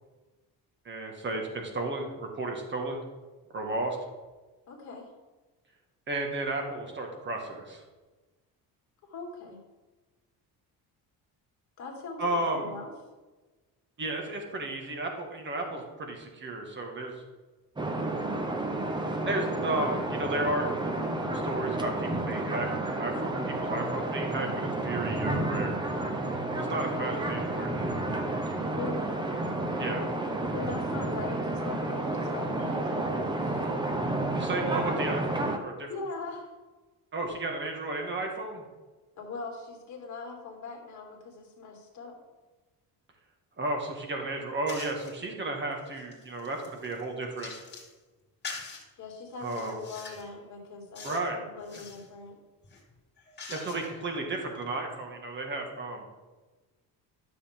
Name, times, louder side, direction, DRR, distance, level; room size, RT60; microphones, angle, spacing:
voice 1, 0.8-3.0 3.5-4.0 6.1-7.8 12.2-12.7 14.0-17.2 19.3-20.8 21.3-22.7 23.0-25.8 26.5-27.8 29.8-30.1 34.3-35.9 37.1-38.6 43.6-47.5 49.4-49.8 51.0-51.4 51.7-51.8 53.5-56.0, right 2 dB, 30° right, 2 dB, 1.6 m, -33 dB
voice 2, 4.7-5.1 9.0-9.6 11.8-12.9 28.7-29.2 30.5-33.7 35.9-36.5 39.1-42.2 49.0-52.4, left 4 dB, 50° left, 0 dB, 2.4 m, -41 dB
sound 1, 17.8-35.6, right 2 dB, 10° right, 0.6 m, -31 dB
sound 2, 44.7-45.2 45.7-47.9 48.4-48.8 49.4-50.3 50.9-51.3 51.6-52.1 52.6-54.1, left 4 dB, 25° left, 2.6 m, -44 dB
12.5 x 6.9 x 3.6 m, 1.2 s
cardioid pair, 175°, 38 cm